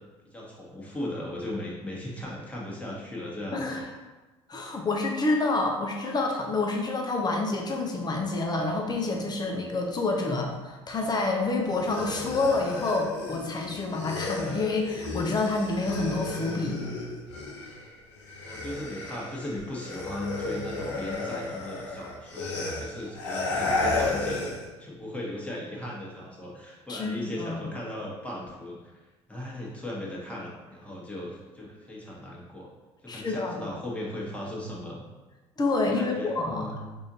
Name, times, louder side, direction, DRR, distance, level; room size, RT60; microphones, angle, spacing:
voice 1, 0.3-3.8 18.4-24.5 24.8-29.0 29.3-32.7 33.0-35.0 35.9-37.0, left 1 dB, 10° left, -4 dB, 1.3 m, -37 dB
voice 2, 3.5-3.8 4.5-16.8 26.9-27.7 33.1-33.6 35.6-36.7, left 3 dB, 30° left, 1 dB, 0.8 m, -28 dB
sound 1, 11.7-17.9 18.2-24.7, left 2 dB, 75° left, 0.7 m, -33 dB
4.8 x 2.7 x 2.8 m, 1.2 s
hypercardioid pair, 60°, 15 cm